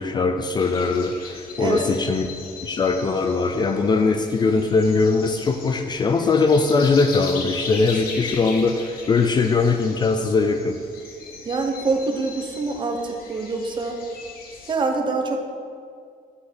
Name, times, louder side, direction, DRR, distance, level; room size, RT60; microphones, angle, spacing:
voice 1, 0.0-2.3 2.6-10.7, left 4 dB, 30° left, 6 dB, 0.4 m, -21 dB
sound 1, 0.6-14.7, left 4 dB, 85° left, 1.3 m, -38 dB
voice 2, 11.4-14.0 14.7-15.4, right 3 dB, 30° right, 4 dB, 0.8 m, -25 dB
8.4 x 5.2 x 5.9 m, 2.2 s
cardioid pair, 170°, 15 cm